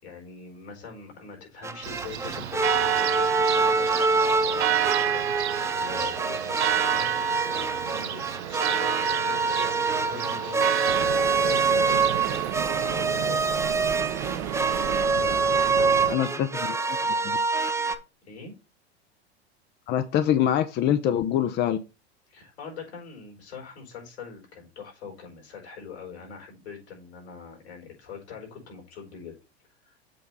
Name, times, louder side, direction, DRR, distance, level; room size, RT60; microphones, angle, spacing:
voice 1, 0.0-10.8 11.4-13.6 15.1-16.4 17.0-17.1 18.2-18.5 22.3-29.4 29.8-30.0, left 6 dB, 75° left, 1 dB, 4.8 m, -42 dB
sound 1, 1.6-18.0, right 4 dB, 10° right, 0.6 m, -26 dB
Church bell, 1.8-12.5, right 13 dB, 85° right, 0.6 m, -29 dB
sound 2, 10.9-16.1, right 10 dB, 60° right, 1.0 m, -32 dB
voice 2, 16.1-16.8 17.2-17.4 19.9-21.8, left 10 dB, 35° left, 10 dB, 0.6 m, -24 dB
7.7 x 3.4 x 5.4 m, 0.28 s
hypercardioid pair, 95°, 32 cm